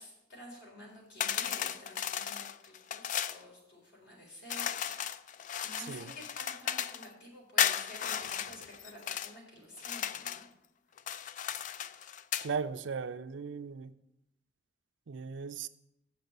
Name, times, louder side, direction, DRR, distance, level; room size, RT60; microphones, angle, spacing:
voice 1, 0.0-5.2 5.6-10.4, left 1 dB, 60° left, -1 dB, 4.0 m, -50 dB
sound 1, 1.2-3.4 4.5-7.1 7.6-9.3 9.8-10.5 11.0-12.5, left 9 dB, 40° left, 0.3 m, -35 dB
voice 2, 5.8-6.1 12.4-13.9 15.1-15.7, right 5 dB, 70° right, 12 dB, 0.5 m, -37 dB
7.8 x 6.6 x 7.9 m, 0.86 s
head